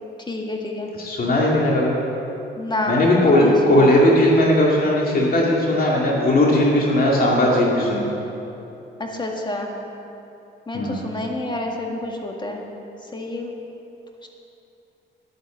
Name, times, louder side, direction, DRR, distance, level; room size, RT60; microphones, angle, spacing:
voice 1, 0.3-0.9 2.6-3.0 3.3-3.9 9.0-9.7 10.7-12.6 13.1-13.5 14.2-14.3, left 2 dB, 25° left, 1 dB, 1.9 m, -28 dB
voice 2, 0.9-2.0 2.9-8.1 10.7-11.1, left 1 dB, 50° left, -3 dB, 2.2 m, -18 dB
10.5 x 10.0 x 7.2 m, 2.9 s
cardioid pair, 90°, 20 cm